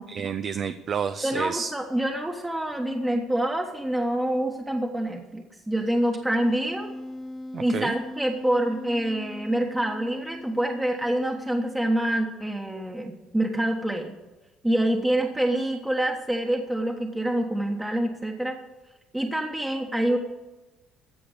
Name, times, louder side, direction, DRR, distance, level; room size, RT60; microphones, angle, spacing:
voice 1, 0.1-1.7 7.5-7.9, right 7 dB, 50° right, 10 dB, 0.5 m, -30 dB
voice 2, 1.2-6.9 7.6-14.2 14.6-18.6 19.1-20.2, right 1 dB, 10° right, 1 dB, 1.3 m, -26 dB
Wind instrument woodwind instrument, 6.4-11.8, left 1 dB, 10° left, 1.4 m, -40 dB
15.0 x 5.1 x 8.1 m, 1.1 s
supercardioid pair, 85°, 0 cm